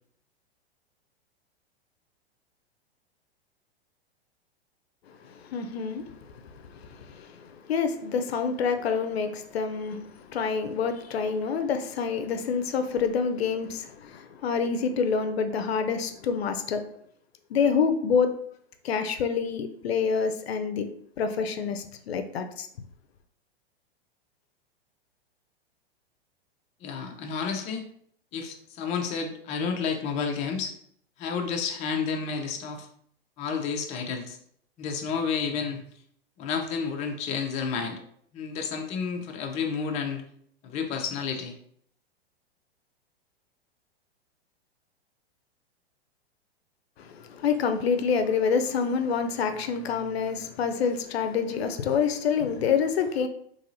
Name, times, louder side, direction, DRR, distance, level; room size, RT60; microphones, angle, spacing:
voice 1, 5.2-16.9 17.5-18.3 18.8-20.9 21.2-22.7 47.0-53.3, left 6 dB, 75° left, 0.5 m, -27 dB
voice 2, 26.8-27.8 28.3-30.7 31.2-32.9 33.4-34.4 34.8-35.8 36.4-38.0 38.3-40.2 40.6-41.5, left 6 dB, 20° left, 0.4 m, -30 dB
2.9 x 2.7 x 2.6 m
hypercardioid pair, 105°, 31 cm